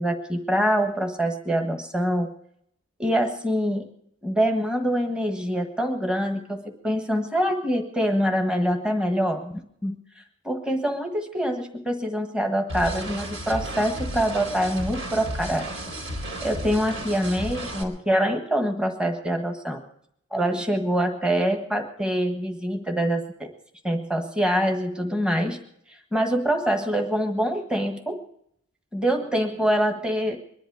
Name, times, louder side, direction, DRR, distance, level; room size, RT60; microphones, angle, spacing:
voice 1, 0.0-2.3 3.0-3.9 4.2-15.6 16.4-19.8 20.3-23.5 23.8-25.6 26.1-28.2 28.9-30.4, equal, 5° right, 3 dB, 1.5 m, -25 dB
sound 1, 12.7-17.8, equal, 65° right, 3.9 m, -33 dB
22.5 x 11.5 x 4.8 m, 0.69 s
head